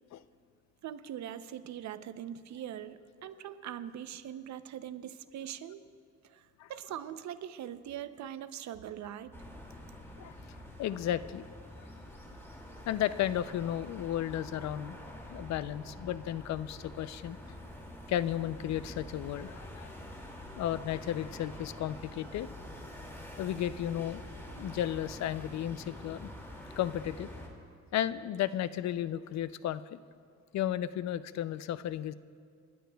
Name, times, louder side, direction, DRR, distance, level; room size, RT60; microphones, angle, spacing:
voice 1, 0.8-5.9 6.3-6.4 6.7-9.3, right 10 dB, 65° right, 12 dB, 0.7 m, -42 dB
sound 1, 9.3-27.5, left 1 dB, 10° left, 2.3 m, -46 dB
voice 2, 10.8-11.5 11.8-11.9 12.9-15.0 15.3-17.4 18.1-19.9 20.6-22.5 23.4-24.2 24.5-26.3 26.8-27.3 27.9-30.0 30.5-32.1, left 11 dB, 65° left, 15 dB, 0.5 m, -34 dB
29.0 x 11.0 x 2.3 m, 2.1 s
cardioid pair, 90°, 30 cm